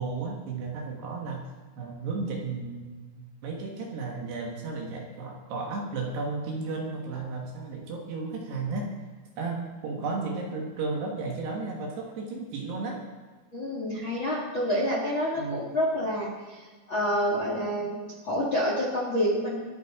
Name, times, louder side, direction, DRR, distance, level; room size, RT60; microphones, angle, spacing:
voice 1, 0.0-1.5 1.8-8.9 9.4-13.0 15.3-15.6, right 3 dB, 65° right, 0 dB, 3.1 m, -34 dB
voice 2, 13.5-19.6, equal, 70° left, -3 dB, 1.1 m, -28 dB
26.0 x 9.5 x 3.6 m, 1.4 s
omnidirectional pair, 5.9 m